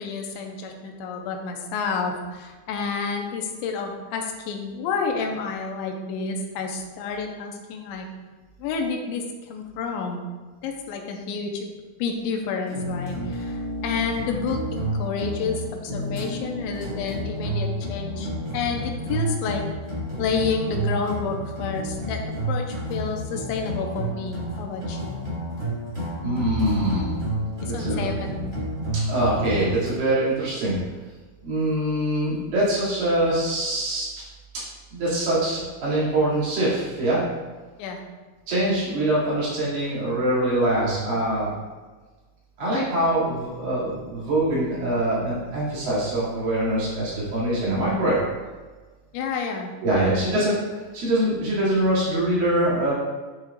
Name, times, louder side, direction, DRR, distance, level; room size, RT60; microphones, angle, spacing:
voice 1, 0.0-8.1 8.6-10.2 10.6-11.7 12.0-19.6 20.2-25.2 27.6-28.4 37.8-38.0 49.1-50.4, left 5 dB, 85° left, 2 dB, 3.0 m, -30 dB
sound 1, 12.7-29.9, equal, 90° right, 0.5 m, -30 dB
voice 2, 26.2-27.1 27.7-28.1 28.9-30.8 31.4-34.1 34.9-37.2 38.5-41.5 42.6-48.2 49.8-52.9, right 1 dB, 55° right, -9 dB, 3.8 m, -24 dB
10.5 x 6.2 x 2.4 m, 1.3 s
omnidirectional pair, 5.2 m